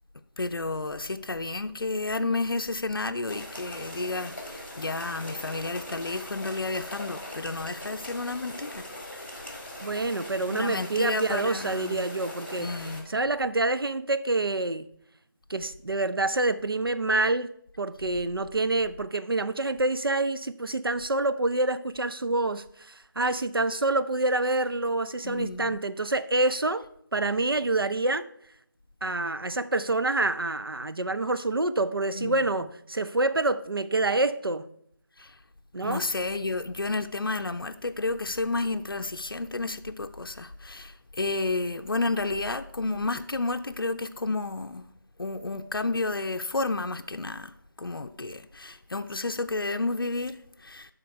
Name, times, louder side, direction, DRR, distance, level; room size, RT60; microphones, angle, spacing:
voice 1, 0.4-8.9 10.5-12.0 12.6-13.1 25.2-25.8 32.2-32.5 35.2-35.4 35.8-44.9 45.2-47.5 47.8-50.9, left 3 dB, 75° left, 0.6 m, -31 dB
sound 1, 3.3-13.0, left 1 dB, 35° left, 2.0 m, -41 dB
voice 2, 9.8-14.9 15.5-26.9 27.1-28.3 29.0-34.7 35.7-36.1, right 2 dB, 85° right, 0.6 m, -27 dB
11.5 x 3.8 x 4.5 m
figure-of-eight pair, 175°, 12 cm